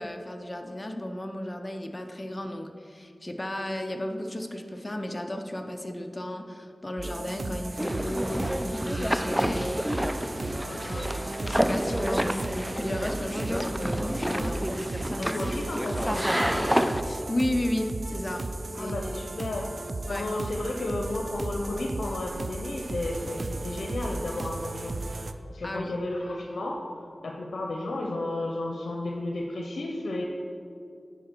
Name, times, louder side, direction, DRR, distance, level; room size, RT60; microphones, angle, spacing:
voice 1, 0.0-10.7 11.0-14.7 17.0-19.0 20.1-20.3 25.6-26.0, left 1 dB, 25° left, 4 dB, 0.7 m, -34 dB
sound 1, 7.0-25.3, right 2 dB, 65° right, 0.4 m, -35 dB
sound 2, 7.8-17.0, equal, 5° right, 0.4 m, -29 dB
voice 2, 10.6-11.2 15.2-16.7 18.7-30.2, left 2 dB, 90° left, 0 dB, 0.6 m, -33 dB
10.0 x 4.9 x 4.5 m, 2.6 s
cardioid pair, 45°, 0 cm